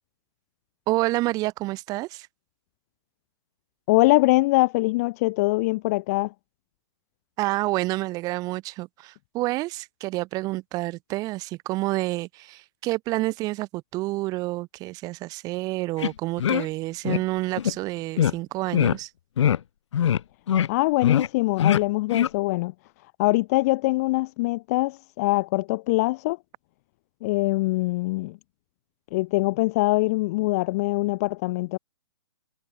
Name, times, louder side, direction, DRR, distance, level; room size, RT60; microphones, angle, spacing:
voice 1, 0.9-2.3 7.4-19.1, right 19 dB, 25° right, 1.8 m, -29 dB
voice 2, 3.9-6.3 20.7-22.7 23.2-26.4 27.2-28.4 29.1-31.8, left 21 dB, 35° left, 0.7 m, -23 dB
sound 1, 16.0-16.1 16.4-16.7 17.0-17.2 17.6-17.7 18.2-18.3 18.7-19.0 19.4-19.6 19.9-20.2 20.5-20.7 21.0-21.3 21.6-21.8 22.1-22.3, left 9 dB, 75° left, 0.5 m, -22 dB
hypercardioid pair, 150°, 15 cm